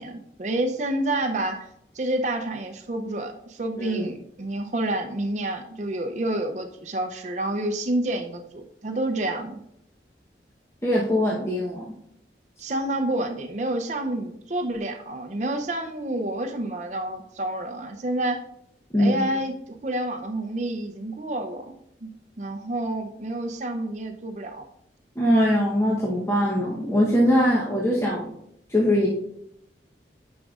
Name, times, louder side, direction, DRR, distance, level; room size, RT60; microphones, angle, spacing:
voice 1, 0.0-1.7 2.0-9.6 12.6-18.4 19.0-21.7 22.0-22.1 22.4-24.6, right 1 dB, 40° right, 5 dB, 0.6 m, -29 dB
voice 2, 3.8-4.1 10.8-11.9 18.9-19.2 25.2-28.3 28.7-29.1, equal, 15° left, -5 dB, 0.9 m, -22 dB
9.6 x 5.2 x 2.4 m, 0.75 s
head